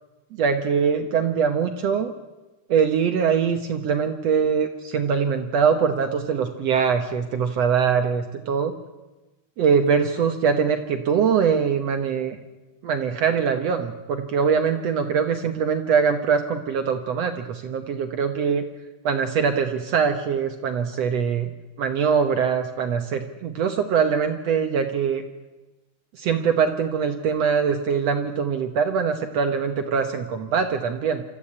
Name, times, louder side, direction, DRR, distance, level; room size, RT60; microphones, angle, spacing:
voice 1, 0.4-2.1 2.7-8.7 9.6-12.4 12.8-18.6 19.0-21.5 21.8-25.2 26.1-31.2, right 6 dB, 75° right, 7 dB, 1.5 m, -22 dB
26.5 x 13.5 x 8.6 m, 1.1 s
omnidirectional pair, 4.4 m